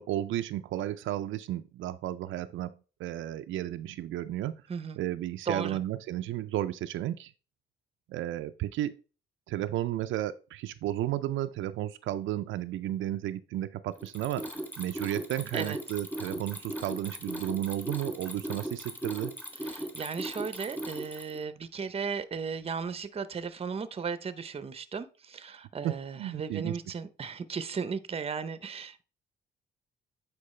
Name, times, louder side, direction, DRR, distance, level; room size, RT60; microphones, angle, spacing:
voice 1, 0.0-2.7 3.0-4.6 5.0-7.3 8.1-8.9 9.5-14.5 14.8-19.3 25.8-26.8, right 13 dB, 80° right, 0.4 m, -33 dB
voice 2, 4.7-5.0 5.5-5.8 15.5-15.8 19.6-29.0, right 6 dB, 30° right, 0.6 m, -36 dB
Mechanisms, 14.0-21.4, right 1 dB, 10° left, 2.0 m, -38 dB
8.6 x 4.5 x 3.2 m
cardioid pair, 90°, 20 cm